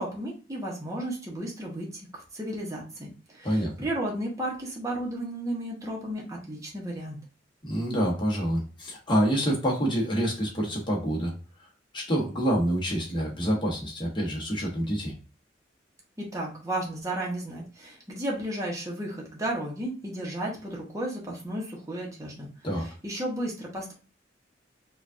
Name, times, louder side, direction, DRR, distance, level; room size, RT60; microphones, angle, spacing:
voice 1, 0.0-7.2 16.2-23.9, right 1 dB, 20° right, -3 dB, 1.0 m, -34 dB
voice 2, 7.6-11.3 11.9-15.1 22.6-22.9, equal, 25° left, -2 dB, 1.3 m, -27 dB
5.1 x 2.5 x 2.6 m, 0.35 s
head